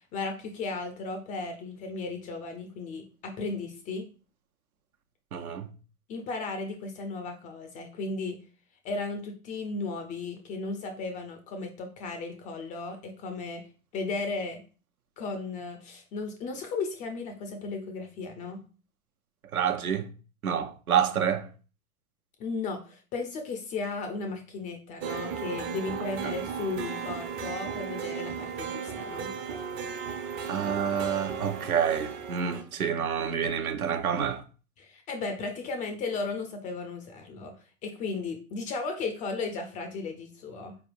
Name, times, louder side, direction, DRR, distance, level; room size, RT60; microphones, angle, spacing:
voice 1, 0.1-4.1 6.1-8.4 8.8-13.7 13.9-14.6 15.2-18.6 22.4-29.3 34.8-37.5 37.8-40.8, left 3 dB, 20° left, 0.4 m, -35 dB
voice 2, 5.3-5.7 19.5-20.1 20.4-21.5 26.2-26.3 30.5-34.4, right 8 dB, 80° right, 0.7 m, -28 dB
sound 1, 25.0-32.6, right 6 dB, 30° right, 0.5 m, -36 dB
4.4 x 3.3 x 2.5 m
figure-of-eight pair, 90°, 43 cm